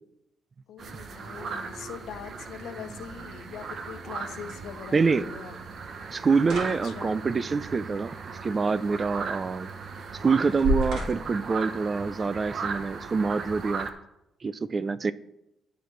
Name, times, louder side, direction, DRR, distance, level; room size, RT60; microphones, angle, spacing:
voice 1, 0.7-5.6 6.7-7.2, left 8 dB, 75° left, 0.6 m, -42 dB
sound 1, 0.8-13.9, right 5 dB, 55° right, 0.8 m, -37 dB
sound 2, 3.6-12.5, right 1 dB, 75° right, 3.0 m, -38 dB
voice 2, 4.9-5.3 6.1-8.2 8.4-9.7 10.2-13.9 14.4-15.1, right 4 dB, 35° right, 0.4 m, -26 dB
14.0 x 5.1 x 3.1 m
cardioid pair, 90°, 0 cm